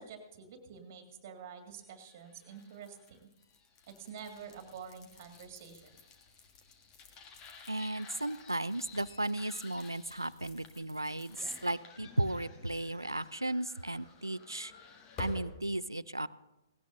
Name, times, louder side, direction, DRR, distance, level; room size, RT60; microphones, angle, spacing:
voice 1, 0.0-3.2 3.9-5.8, right 6 dB, 40° right, 4 dB, 2.1 m, -48 dB
sound 1, 1.9-15.6, left 4 dB, 25° left, 1.4 m, -52 dB
voice 2, 7.7-14.7 15.2-16.3, right 1 dB, 85° right, 18 dB, 0.4 m, -35 dB
18.5 x 17.5 x 2.7 m, 0.95 s
figure-of-eight pair, 120°, 2 cm